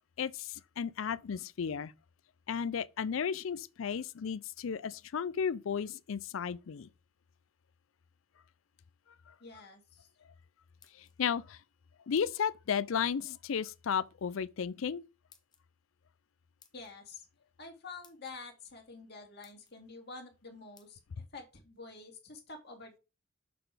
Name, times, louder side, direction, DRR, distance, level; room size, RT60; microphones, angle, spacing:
voice 1, 0.2-1.9 2.5-6.9 9.3-9.4 10.9-11.6 12.1-15.0, left 7 dB, 75° left, 0.4 m, -34 dB
voice 2, 9.4-10.1 16.7-17.2 17.6-21.0 21.3-23.0, left 3 dB, 50° left, 1.9 m, -48 dB
sound 1, 10.6-11.4 12.1-12.6 13.7-14.0 15.3-15.6 16.6-16.9 17.6-17.7 18.0-18.3 19.0-19.1 19.4-19.8 20.8-20.9, left 6 dB, 20° left, 0.9 m, -62 dB
6.7 x 4.0 x 4.9 m
head